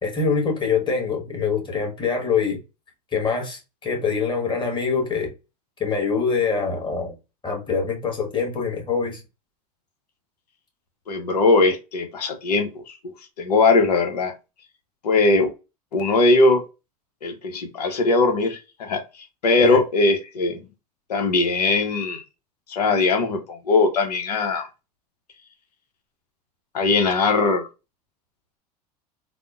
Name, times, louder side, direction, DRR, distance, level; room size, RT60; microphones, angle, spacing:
voice 1, 0.0-2.6 3.1-5.3 5.8-7.1 7.4-9.2 19.6-19.8, left 5 dB, 25° left, 1.5 m, -24 dB
voice 2, 11.1-14.3 15.0-15.5 15.9-16.6 17.2-19.0 19.4-20.7 21.1-22.2 22.7-24.7 26.7-27.7, left 3 dB, 85° left, 0.8 m, -20 dB
3.5 x 2.1 x 2.5 m
hypercardioid pair, 80°, 20 cm